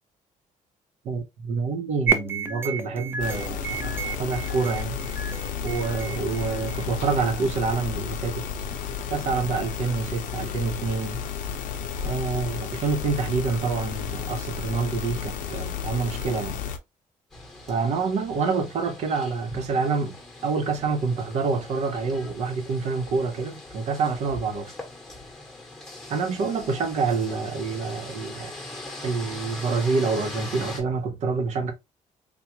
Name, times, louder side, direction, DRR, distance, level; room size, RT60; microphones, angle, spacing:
voice 1, 1.0-5.0 5.6-8.5 9.1-11.2 12.0-16.6 17.7-20.1 20.4-24.7 26.1-28.5 29.0-31.7, right 4 dB, 60° right, 0.9 m, -27 dB
sound 1, 2.1-7.1, right 6 dB, 15° right, 0.4 m, -31 dB
sound 2, 3.2-16.8, left 7 dB, 85° left, 0.6 m, -32 dB
sound 3, 17.3-30.8, left 2 dB, 5° left, 1.0 m, -41 dB
3.6 x 2.3 x 2.8 m
cardioid pair, 155°, 13 cm